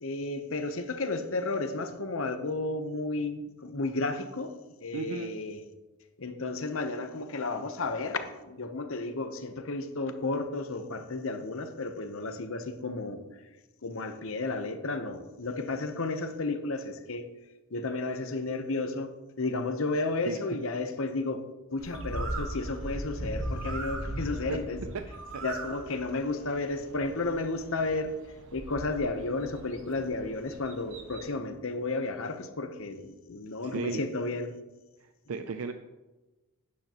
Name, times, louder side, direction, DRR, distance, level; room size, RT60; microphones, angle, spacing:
voice 1, 0.0-5.6 6.2-13.2 13.8-17.3 17.7-19.1 19.4-21.4 21.7-24.8 25.4-28.1 28.5-34.5, left 3 dB, 65° left, 8 dB, 0.9 m, -33 dB
voice 2, 4.9-5.3 20.3-20.4 24.5-24.6 24.9-25.0 25.3-25.4 33.6-34.0 35.0-35.7, right 4 dB, 75° right, 8 dB, 0.5 m, -35 dB
Bird, 21.8-31.4, right 1 dB, 60° right, 1.2 m, -39 dB
11.5 x 9.6 x 3.0 m, 1.1 s
head